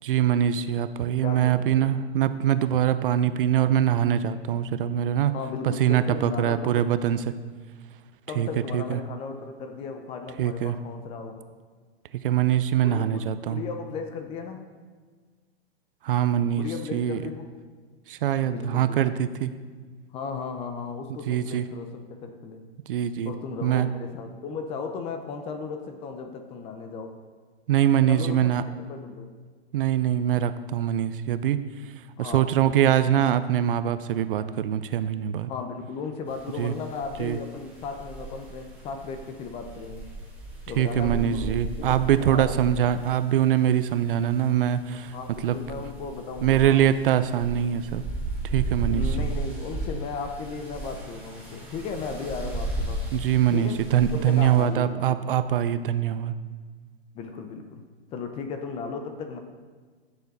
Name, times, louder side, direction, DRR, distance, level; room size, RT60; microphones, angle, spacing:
voice 1, 0.0-5.4 5.6-7.2 8.4-8.5 8.7-9.0 10.4-10.8 12.1-13.6 16.0-17.2 18.1-19.5 21.3-21.7 22.9-23.3 23.6-23.9 27.7-28.6 29.7-31.6 32.2-35.5 36.6-36.7 37.2-37.4 40.8-45.2 45.4-45.6 46.4-48.0 48.4-49.1 53.1-56.3, right 10 dB, 55° right, 13 dB, 0.6 m, -23 dB
voice 2, 1.2-1.9 5.3-6.9 8.3-11.4 12.8-14.6 16.6-17.5 18.4-19.0 20.1-22.6 23.2-27.2 28.1-28.5 28.8-29.3 32.2-33.0 35.5-40.1 40.7-42.6 45.1-46.9 48.9-53.1 53.5-53.8 54.1-55.2 57.1-57.8 58.1-59.4, left 5 dB, 20° left, 7 dB, 0.6 m, -36 dB
sound 1, 36.3-54.6, right 2 dB, 5° right, 3.2 m, -35 dB
14.0 x 6.9 x 4.1 m, 1.5 s
hypercardioid pair, 140°, 33 cm